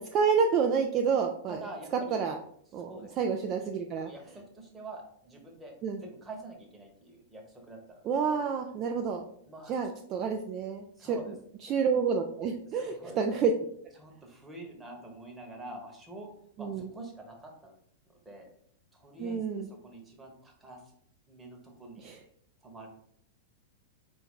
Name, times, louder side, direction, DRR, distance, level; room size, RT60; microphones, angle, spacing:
voice 1, 0.0-1.6 2.1-2.4 2.7-4.1 5.8-6.0 8.0-9.2 9.7-11.2 11.6-13.5 16.6-16.9 19.2-19.7 22.0-22.2, right 6 dB, 35° right, 3 dB, 0.3 m, -29 dB
voice 2, 1.5-2.2 2.8-3.4 4.0-8.3 9.4-9.8 11.0-11.3 11.6-11.7 12.7-13.2 14.0-16.3 16.6-17.8 18.1-18.5 18.9-20.8 21.3-22.1 22.6-22.9, right 2 dB, 15° right, 1 dB, 1.0 m, -46 dB
4.4 x 2.6 x 3.6 m, 0.67 s
figure-of-eight pair, 95°, 0 cm